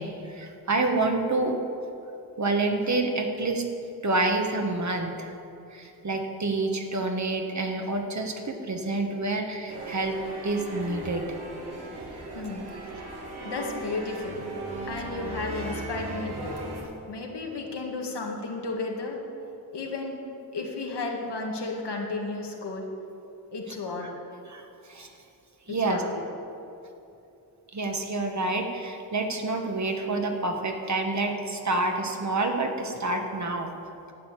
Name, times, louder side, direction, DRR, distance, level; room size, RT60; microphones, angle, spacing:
voice 1, 0.0-1.6 2.4-3.6 4.0-5.3 5.7-10.2 10.4-11.3 23.7-23.8 24.0-24.1 24.5-24.6 24.9-25.1 25.7-26.0 27.7-33.7, right 2 dB, 45° right, 3 dB, 1.4 m, -28 dB
sound 1, 9.7-16.8, right 2 dB, 75° right, 2.8 m, -37 dB
voice 2, 12.3-12.7 13.0-14.4 14.9-16.6 17.1-19.2 19.7-20.2 20.5-22.9 23.5-24.1 25.8-26.2, left 3 dB, 90° left, 0 dB, 2.1 m, -33 dB
12.0 x 9.0 x 8.2 m, 2.8 s
wide cardioid pair, 140°, 40 cm